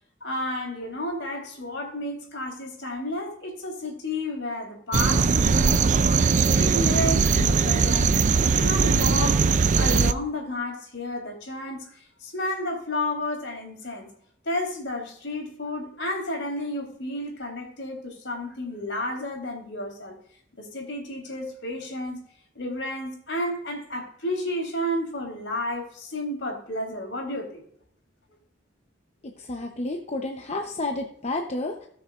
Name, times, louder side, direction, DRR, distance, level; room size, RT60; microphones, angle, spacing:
voice 1, 0.2-9.4 9.8-14.1 14.5-20.2 20.6-22.2 22.6-27.6, left 1 dB, 70° left, 2 dB, 3.7 m, -31 dB
sound 1, 4.9-10.1, right 5 dB, 40° right, 0.5 m, -20 dB
voice 2, 29.2-31.9, left 2 dB, 35° left, 2 dB, 0.9 m, -31 dB
18.5 x 6.7 x 2.5 m, 0.65 s
head